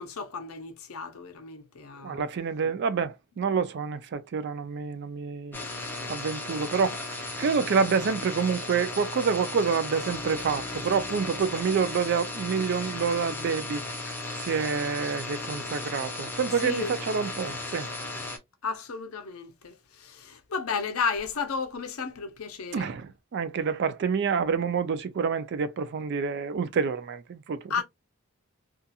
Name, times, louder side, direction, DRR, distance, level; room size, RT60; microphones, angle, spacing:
voice 1, 0.0-2.2 16.6-17.0 18.6-22.9 27.7-27.8, left 5 dB, 75° left, 0.6 m, -33 dB
voice 2, 2.0-5.6 6.1-17.9 22.7-27.8, right 6 dB, 50° right, 0.3 m, -28 dB
sound 1, 5.5-18.4, left 2 dB, 10° left, 0.5 m, -35 dB
2.7 x 2.4 x 2.2 m
head